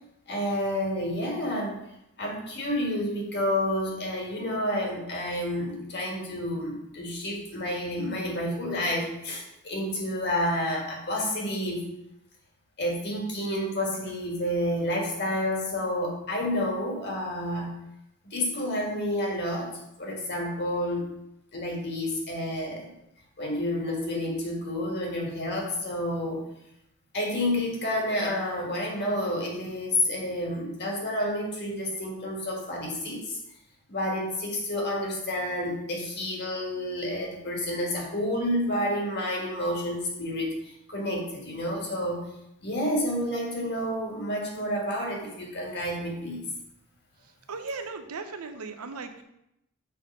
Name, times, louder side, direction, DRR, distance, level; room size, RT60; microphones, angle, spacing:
voice 1, 0.3-1.8 2.2-11.8 12.8-17.7 18.3-21.1 21.5-22.9 23.4-26.4 27.1-33.4 33.9-42.2 42.6-46.5, left 1 dB, 50° left, 0 dB, 1.7 m, -29 dB
voice 2, 47.2-49.2, right 4 dB, 90° right, 7 dB, 0.8 m, -37 dB
6.6 x 4.3 x 5.3 m, 0.81 s
head